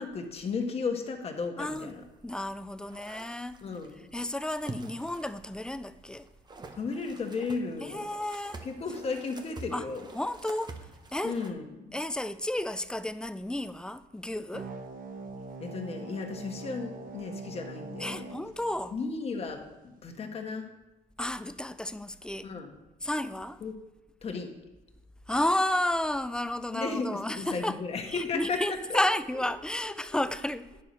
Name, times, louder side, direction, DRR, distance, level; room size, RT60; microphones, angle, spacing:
voice 1, 0.0-2.0 3.6-4.0 6.8-8.1 8.6-10.1 11.2-12.0 15.6-18.4 18.9-20.7 22.4-22.7 23.6-23.8 24.2-24.5 26.7-29.0 30.1-30.2, left 4 dB, 35° left, 1.4 m, -34 dB
voice 2, 1.6-1.9 2.2-3.6 4.1-6.3 7.8-8.6 9.7-9.9 10.1-11.4 11.9-14.7 16.4-16.6 18.0-19.0 21.2-22.5 23.0-23.6 25.3-27.8 28.1-30.7, left 1 dB, 5° left, 0.4 m, -32 dB
sound 1, 1.6-11.5, right 3 dB, 25° right, 0.9 m, -48 dB
sound 2, 14.5-19.5, right 3 dB, 55° right, 1.2 m, -43 dB
9.5 x 6.6 x 4.1 m
cardioid pair, 110°, 17 cm